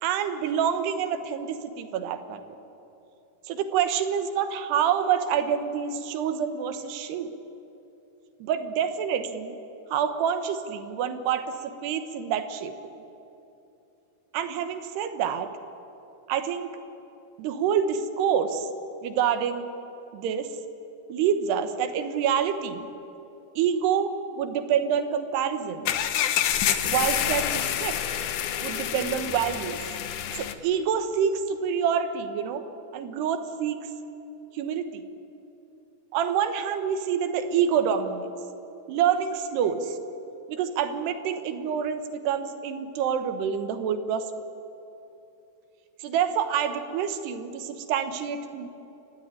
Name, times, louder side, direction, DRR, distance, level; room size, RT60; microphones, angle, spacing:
voice 1, 0.0-2.4 3.5-7.3 8.4-9.5 9.9-12.8 14.3-15.5 16.3-16.8 17.4-18.7 19.0-19.7 20.1-20.5 21.1-22.9 23.6-26.0 26.8-28.0 28.6-29.8 30.4-32.6 32.9-33.9 34.5-35.0 36.1-38.3 38.9-40.0 40.5-44.2 46.0-48.7, right 8 dB, 75° right, 9 dB, 3.3 m, -27 dB
sound 1, 25.8-30.5, left 10 dB, 70° left, 2.0 m, -27 dB
29.5 x 15.0 x 10.0 m, 2.9 s
omnidirectional pair, 4.9 m